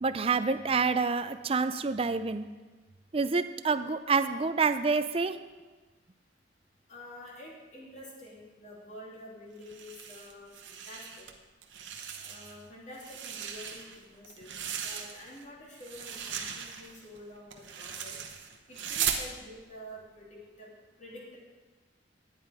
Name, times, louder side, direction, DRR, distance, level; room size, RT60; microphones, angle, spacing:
voice 1, 0.0-2.4 3.1-5.4, right 4 dB, 30° right, 11 dB, 0.4 m, -27 dB
voice 2, 6.9-11.3 12.2-14.5 14.8-18.1 18.7-20.7 21.0-21.4, left 1 dB, 40° left, -4 dB, 2.6 m, -48 dB
sound 1, 9.6-11.3 11.6-12.6 12.9-15.4 15.8-19.3, right 8 dB, 90° right, 1.0 m, -38 dB
10.5 x 9.0 x 4.8 m, 1.3 s
head